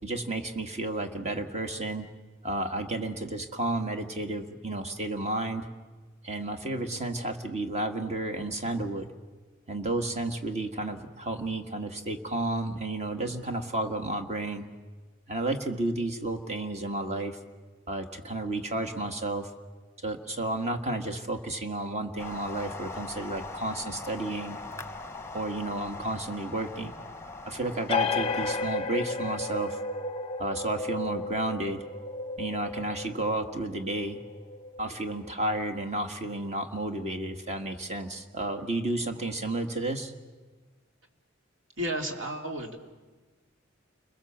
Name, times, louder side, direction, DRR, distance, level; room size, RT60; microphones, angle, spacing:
voice 1, 0.0-2.1 2.4-5.7 6.2-9.1 9.7-14.7 15.3-17.4 17.9-19.5 20.0-24.6 25.3-26.9 27.5-29.8 30.4-31.8 32.4-34.2 34.8-40.1, right 2 dB, 35° right, 6 dB, 1.7 m, -32 dB
sound 1, 22.2-28.7, left 3 dB, 15° left, 1.1 m, -41 dB
sound 2, 27.9-35.1, left 4 dB, 30° left, 0.7 m, -33 dB
voice 2, 41.8-42.8, equal, 70° right, 3 dB, 2.7 m, -32 dB
29.5 x 21.5 x 7.3 m, 1.3 s
head